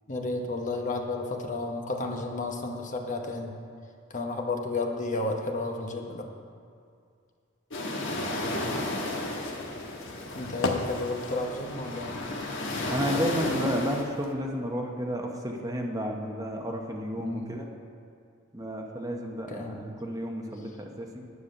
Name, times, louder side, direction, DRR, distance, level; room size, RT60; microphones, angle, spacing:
voice 1, 0.1-3.5 4.1-6.2 10.3-12.1 17.2-17.5 19.5-19.8, left 2 dB, 40° left, 2 dB, 1.0 m, -32 dB
sound 1, 7.7-14.0, left 1 dB, 65° left, 1.3 m, -33 dB
sound 2, 8.7-14.3, left 3 dB, 80° left, 1.0 m, -39 dB
voice 2, 12.9-17.7 18.5-21.2, equal, 15° right, 1 dB, 0.9 m, -32 dB
9.8 x 8.3 x 6.4 m, 2.3 s
head